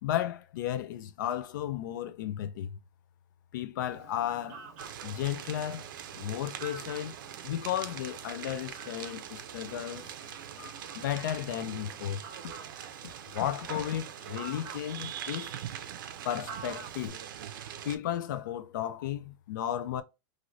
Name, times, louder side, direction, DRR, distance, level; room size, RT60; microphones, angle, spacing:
voice 1, 0.0-2.8 3.5-4.6 5.0-7.2 7.4-12.2 13.3-15.5 16.2-17.2 17.8-20.0, left 11 dB, 75° left, 0.4 m, -34 dB
Fowl, 3.8-17.1, right 5 dB, 50° right, 0.7 m, -50 dB
sound 1, 4.8-18.0, right 10 dB, 85° right, 0.4 m, -43 dB
3.0 x 2.6 x 2.6 m
supercardioid pair, 165°, 11 cm